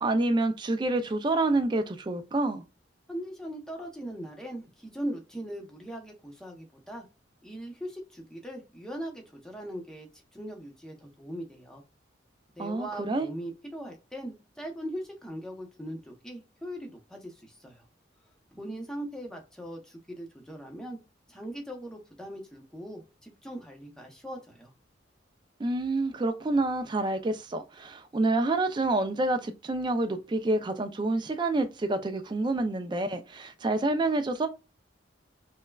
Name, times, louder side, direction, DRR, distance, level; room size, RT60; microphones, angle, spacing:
voice 1, 0.0-2.6 12.6-13.3 25.6-34.5, right 2 dB, 25° right, 0.3 m, -28 dB
voice 2, 3.1-7.1 7.4-10.1 10.3-11.8 12.5-17.8 18.5-21.0 21.3-24.7, right 1 dB, 5° left, 0.7 m, -40 dB
5.5 x 2.1 x 2.3 m
head